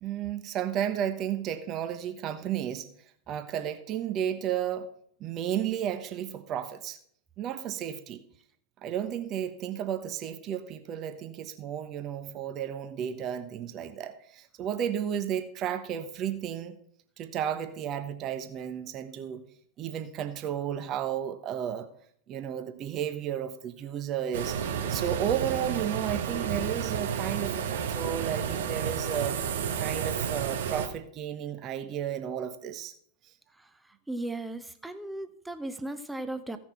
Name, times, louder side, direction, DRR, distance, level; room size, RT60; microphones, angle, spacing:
voice 1, 0.0-2.9 3.3-4.9 5.2-7.0 7.4-8.2 8.8-16.8 17.2-19.4 19.8-21.9 22.3-24.6 24.9-29.4 29.8-32.9, right 9 dB, 35° right, 8 dB, 1.2 m, -33 dB
sound 1, 24.3-30.9, right 7 dB, 60° right, 1.3 m, -31 dB
voice 2, 34.1-36.6, right 2 dB, 5° right, 8 dB, 1.0 m, -36 dB
16.0 x 6.1 x 4.4 m, 0.62 s
figure-of-eight pair, 90°, 0 cm